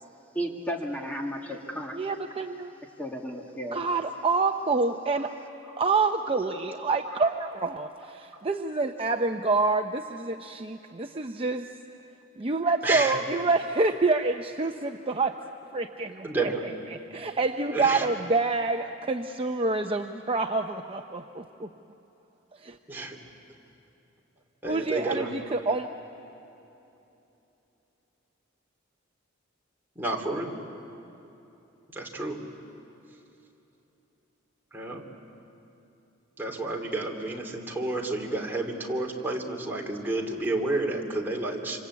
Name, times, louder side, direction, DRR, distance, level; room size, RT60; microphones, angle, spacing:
voice 1, 0.3-2.0 3.0-3.8, equal, 10° left, 0 dB, 2.0 m, -33 dB
voice 2, 1.9-2.7 3.7-5.3 5.8-11.7 12.4-15.3 15.7-16.5 16.9-21.7 22.5-22.8 24.6-25.9, right 3 dB, 30° right, 5 dB, 0.7 m, -27 dB
voice 3, 12.8-13.2 16.2-16.6 17.7-18.1 22.9-23.2 24.6-25.4 29.9-30.6 31.9-32.4 34.7-35.0 36.4-41.8, right 2 dB, 10° right, -1 dB, 2.9 m, -30 dB
27.0 x 26.0 x 8.5 m, 3.0 s
head